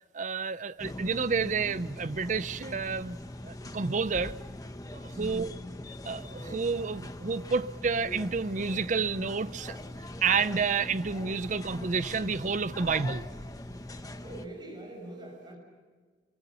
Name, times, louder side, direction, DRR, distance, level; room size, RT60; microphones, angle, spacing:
voice 1, 0.1-3.2 3.4-4.3 4.9-5.5 6.1-9.8 10.2-13.3, right 5 dB, 45° right, 0.6 m, -30 dB
sound 1, 0.8-14.5, left 1 dB, 20° left, 1.1 m, -42 dB
voice 2, 5.1-5.7 14.2-15.6, right 1 dB, 25° right, 5.6 m, -42 dB
28.5 x 24.0 x 5.8 m
head